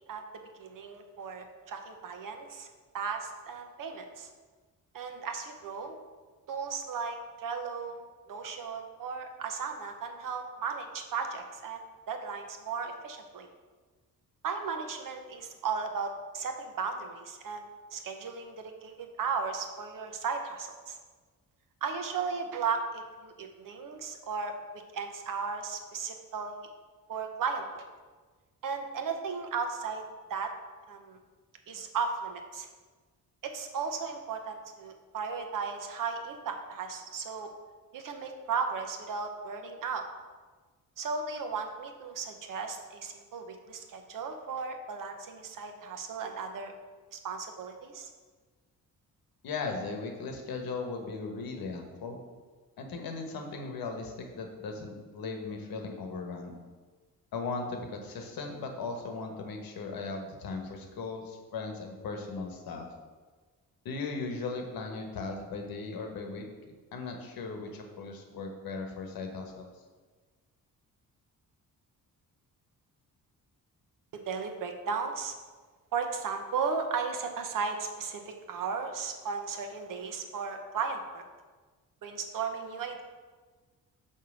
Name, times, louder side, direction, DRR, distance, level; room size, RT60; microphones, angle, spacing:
voice 1, 0.6-2.7 2.9-4.3 4.9-6.0 6.5-13.5 14.4-17.6 17.9-18.6 18.8-21.0 21.8-24.5 24.9-26.6 27.1-27.8 28.6-30.0 30.3-30.5 30.9-31.2 31.7-32.7 33.4-37.5 37.9-40.0 41.0-46.7 47.1-48.1 74.1-75.3 75.9-81.2 82.0-83.0, right 5 dB, 65° right, 5 dB, 0.9 m, -35 dB
voice 2, 49.4-52.2 52.8-56.5 57.3-62.9 63.8-66.4 66.9-69.7, left 4 dB, 85° left, 3 dB, 1.3 m, -37 dB
5.6 x 4.6 x 6.2 m, 1.4 s
wide cardioid pair, 145°, 35 cm